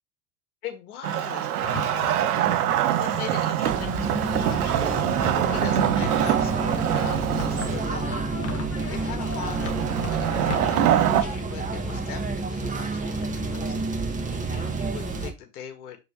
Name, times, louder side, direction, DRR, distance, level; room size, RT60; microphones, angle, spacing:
voice 1, 0.6-2.5 3.0-5.0 5.5-8.1 8.9-14.1 14.4-16.0, left 9 dB, 75° left, 2.0 m, -40 dB
Wood, 1.0-7.8 9.5-11.2, right 11 dB, 75° right, 1.1 m, -24 dB
sound 1, 1.6-10.8, left 5 dB, 30° left, 1.9 m, -38 dB
sound 2, 3.6-15.3, right 3 dB, 15° right, 2.0 m, -29 dB
7.0 x 5.0 x 3.2 m
hypercardioid pair, 90°, 45 cm